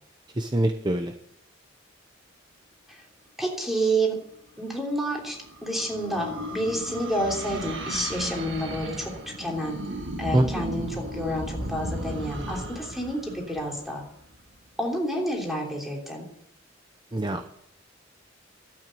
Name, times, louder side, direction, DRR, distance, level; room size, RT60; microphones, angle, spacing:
voice 1, 0.4-1.1 10.3-10.4 17.1-17.4, right 1 dB, 25° right, 7 dB, 0.7 m, -23 dB
voice 2, 3.4-4.2 4.6-5.4 5.6-9.1 9.4-9.8 10.2-14.0 14.8-16.2, right 1 dB, ahead, 0 dB, 3.3 m, -29 dB
sound 1, 4.8-14.4, right 1 dB, 65° right, 2.0 m, -35 dB
12.0 x 9.1 x 7.7 m, 0.72 s
head